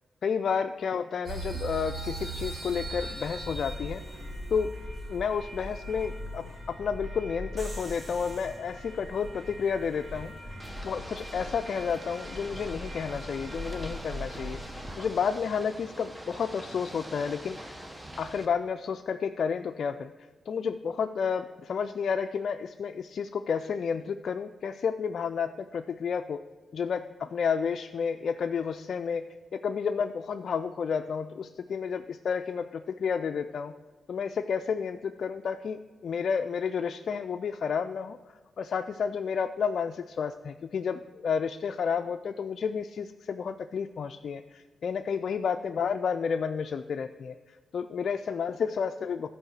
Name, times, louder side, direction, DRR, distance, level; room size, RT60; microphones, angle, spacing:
voice 1, 0.2-4.2 4.5-4.7 5.1-10.5 10.8-17.9 18.2-20.1 20.5-26.4 26.7-33.8 34.1-38.2 38.6-49.3, left 6 dB, 70° left, 7 dB, 0.3 m, -31 dB
sound 1, 1.2-15.2, right 1 dB, 55° right, 3.5 m, -39 dB
Ocean / Boat Water vehicle, 10.6-18.5, right 1 dB, 20° right, 1.2 m, -44 dB
12.5 x 4.7 x 6.4 m, 1.4 s
cardioid pair, 60°, 0 cm